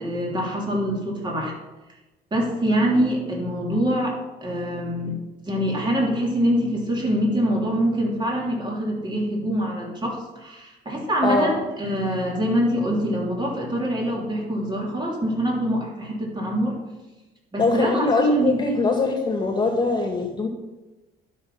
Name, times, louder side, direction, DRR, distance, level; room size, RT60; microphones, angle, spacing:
voice 1, 0.0-1.5 2.3-5.2 5.5-16.8 17.5-18.8, equal, 25° right, -2 dB, 3.3 m, -24 dB
voice 2, 11.2-11.6 17.6-20.5, left 2 dB, 25° left, 1 dB, 1.9 m, -22 dB
12.0 x 6.3 x 5.6 m, 1.1 s
cardioid pair, 110°, 17 cm